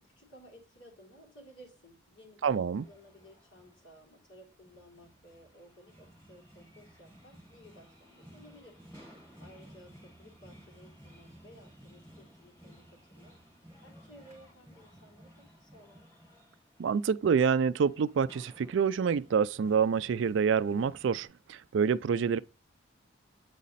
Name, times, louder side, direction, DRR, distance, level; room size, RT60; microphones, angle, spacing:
voice 1, 0.0-8.8 9.4-13.3 13.8-16.0, equal, 70° left, 3.6 m, -56 dB
voice 2, 2.4-2.8 16.8-22.4, right 6 dB, 70° right, 0.3 m, -27 dB
sound 1, 2.7-21.3, equal, 15° left, 2.1 m, -56 dB
8.4 x 4.2 x 4.0 m
head